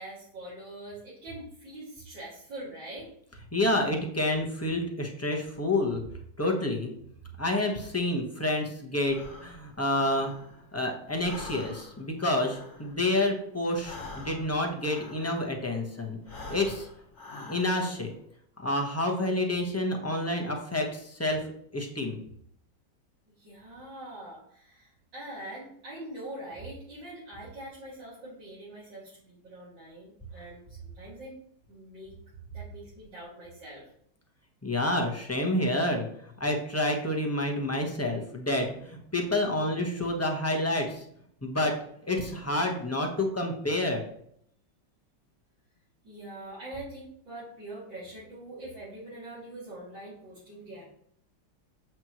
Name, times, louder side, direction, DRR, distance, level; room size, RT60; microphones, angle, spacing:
voice 1, 0.0-3.1 23.4-31.4 31.7-32.1 32.5-33.9 46.0-50.8, right 1 dB, 85° right, -10 dB, 3.4 m, -43 dB
voice 2, 3.5-6.0 6.4-6.9 7.4-10.3 10.7-16.2 16.5-16.9 17.5-18.1 18.6-22.2 34.6-41.1 41.4-41.8 42.1-44.0, left 1 dB, 10° left, 1 dB, 1.0 m, -29 dB
Breathing, 9.0-10.8 11.1-15.7 16.2-18.1, left 2 dB, 55° left, 2.1 m, -45 dB
7.8 x 6.3 x 3.1 m, 0.68 s
omnidirectional pair, 2.0 m